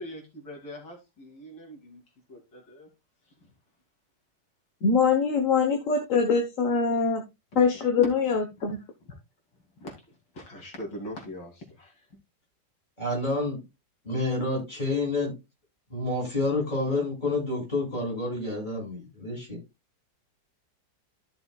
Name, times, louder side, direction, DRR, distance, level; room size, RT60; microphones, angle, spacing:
voice 1, 0.0-2.0 2.3-2.9 3.4-3.5 8.0-8.1 8.7-8.8 9.1-9.2 9.8-12.1, equal, 80° left, 1 dB, 3.3 m, -41 dB
voice 2, 4.8-7.2 7.5-8.8, left 5 dB, 50° left, 4 dB, 1.4 m, -23 dB
voice 3, 13.0-13.6 14.1-15.3 15.9-19.6, left 2 dB, 25° left, 0 dB, 7.2 m, -28 dB
14.0 x 6.8 x 2.3 m, 0.23 s
omnidirectional pair, 2.0 m